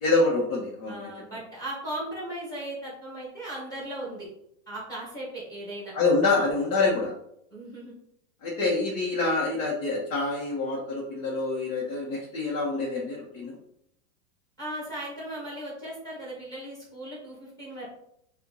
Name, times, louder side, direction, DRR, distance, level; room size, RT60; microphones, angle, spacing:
voice 1, 0.0-0.9 5.9-7.1 8.4-13.5, left 3 dB, 65° left, -5 dB, 1.4 m, -26 dB
voice 2, 0.9-4.3 4.7-5.9 7.5-7.9 14.6-17.9, right 1 dB, 10° left, -4 dB, 1.5 m, -37 dB
4.4 x 2.8 x 4.0 m, 0.76 s
supercardioid pair, 155°, 41 cm